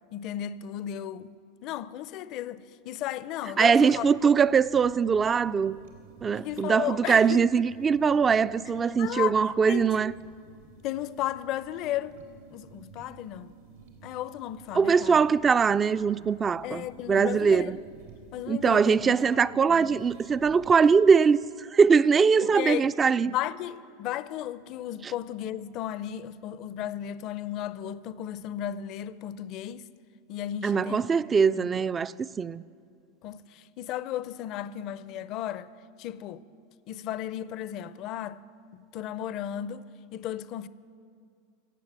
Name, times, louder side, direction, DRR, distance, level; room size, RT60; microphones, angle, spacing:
voice 1, 0.1-1.3 1.6-4.1 6.3-7.5 9.0-9.9 10.8-12.2 12.5-13.5 14.0-15.2 16.6-17.8 18.3-19.4 19.6-20.0 22.4-22.9 23.3-29.8 30.3-31.1 31.5-31.7 33.2-35.7 36.0-36.4 36.9-38.4 38.7-40.7, left 11 dB, 50° left, 0.5 m, -35 dB
voice 2, 3.6-5.7 6.2-10.1 14.7-17.8 18.5-23.3 25.0-25.1 30.6-32.6, right 6 dB, 25° right, 0.3 m, -22 dB
sound 1, 3.8-21.1, right 6 dB, 85° right, 2.4 m, -52 dB
16.0 x 7.4 x 9.2 m
hypercardioid pair, 100°, 0 cm